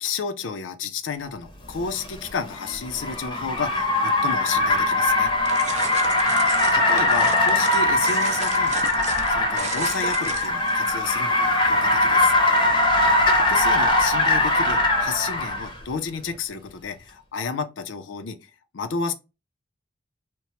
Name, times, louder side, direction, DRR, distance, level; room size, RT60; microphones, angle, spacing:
voice 1, 0.0-5.3 6.7-12.3 13.4-18.4 18.7-19.1, left 5 dB, 80° left, 0.5 m, -31 dB
Car, 1.8-15.7, left 2 dB, 25° left, 0.6 m, -21 dB
sound 1, 5.5-10.8, right 6 dB, 35° right, 0.4 m, -35 dB
2.9 x 2.1 x 2.7 m
head